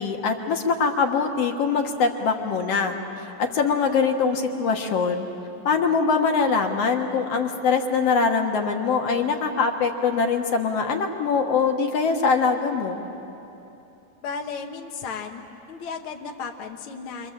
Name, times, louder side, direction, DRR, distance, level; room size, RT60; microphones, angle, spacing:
voice 1, 0.0-5.3 5.7-13.0, left 5 dB, 55° left, 4 dB, 2.0 m, -23 dB
voice 2, 14.2-15.4 15.7-17.3, left 5 dB, 80° left, 3 dB, 1.2 m, -34 dB
29.0 x 24.5 x 7.6 m, 2.9 s
omnidirectional pair, 4.3 m